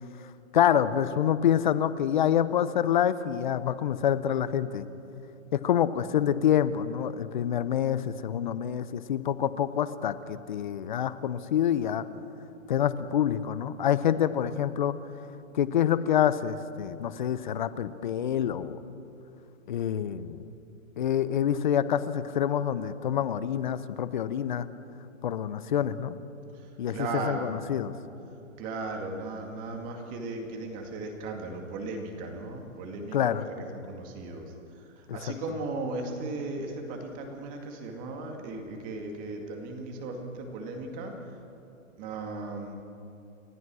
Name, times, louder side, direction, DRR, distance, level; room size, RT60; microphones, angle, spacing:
voice 1, 0.5-4.9 5.5-12.0 12.7-14.9 15.5-18.8 19.7-20.4 21.0-24.7 25.2-26.2 26.8-27.9 33.1-33.4 35.1-35.4, left 9 dB, 35° left, 15 dB, 0.7 m, -27 dB
voice 2, 26.9-27.5 28.6-33.3 33.7-34.4 35.1-41.1 42.0-42.8, right 3 dB, 20° right, 3 dB, 2.2 m, -36 dB
30.0 x 14.0 x 6.3 m, 2.8 s
hypercardioid pair, 160°, 41 cm